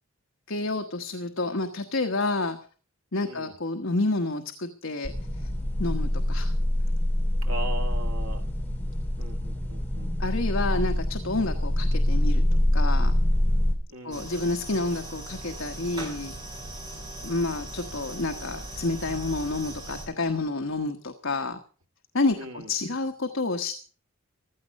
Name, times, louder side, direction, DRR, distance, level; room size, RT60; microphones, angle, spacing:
voice 1, 0.5-2.6 3.1-5.5 5.8-6.5 10.2-12.4 12.7-13.2 14.0-16.3 17.2-21.6 22.1-23.8, left 2 dB, 65° left, 6 dB, 1.3 m, -29 dB
sound 1, 5.0-13.7, left 1 dB, 10° left, 2.8 m, -25 dB
voice 2, 7.4-8.5 9.2-10.1 13.9-14.3 22.3-22.7, right 2 dB, 80° right, 4 dB, 2.1 m, -38 dB
sound 2, 14.1-20.0, right 1 dB, 20° right, 5.6 m, -39 dB
15.5 x 13.0 x 5.3 m, 0.39 s
head